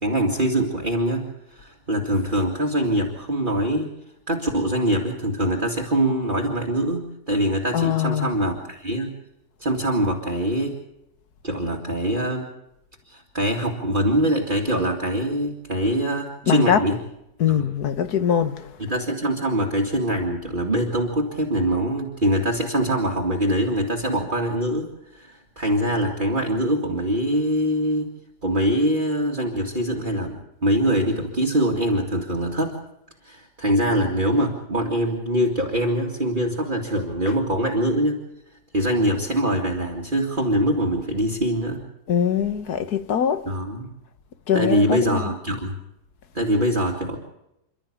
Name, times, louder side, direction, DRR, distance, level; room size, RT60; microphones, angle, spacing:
voice 1, 0.0-3.9 4.3-9.2 9.6-10.8 11.4-12.5 13.1-17.0 17.5-17.7 18.8-28.1 28.4-32.8 33.2-38.2 38.7-41.8 43.5-43.9 44.5-45.8 46.3-47.2, equal, 30° right, 2.5 m, -23 dB
voice 2, 7.7-8.3 16.5-16.8 17.4-18.7 42.1-43.4 44.5-45.3, left 8 dB, 70° left, 1.7 m, -22 dB
28.5 x 13.0 x 8.7 m
omnidirectional pair, 1.7 m